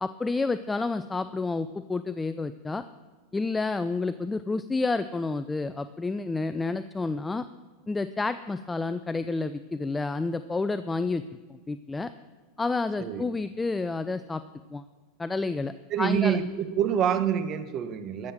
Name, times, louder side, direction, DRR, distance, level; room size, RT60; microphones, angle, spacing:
voice 1, 0.0-2.8 3.3-7.4 7.9-11.2 11.5-12.1 12.6-14.4 14.7-14.8 15.2-15.7 16.0-16.4, left 3 dB, 10° left, 12 dB, 0.4 m, -29 dB
voice 2, 15.9-18.3, right 8 dB, 40° right, 9 dB, 1.3 m, -26 dB
13.5 x 7.9 x 7.3 m, 1.4 s
supercardioid pair, 130°, 0 cm